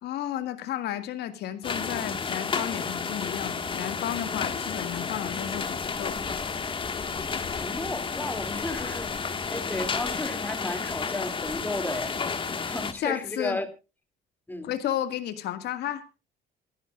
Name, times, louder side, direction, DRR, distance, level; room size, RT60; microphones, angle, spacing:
voice 1, 0.0-6.2 12.9-13.6 14.6-16.0, left 11 dB, 75° left, 2.1 m, -32 dB
sound 1, 1.6-12.9, left 5 dB, 30° left, 1.8 m, -31 dB
voice 2, 7.5-9.1 9.5-12.2 12.7-13.7 14.5-14.7, left 2 dB, 10° left, 2.8 m, -33 dB
27.5 x 11.0 x 2.5 m
cardioid pair, 110°, 17 cm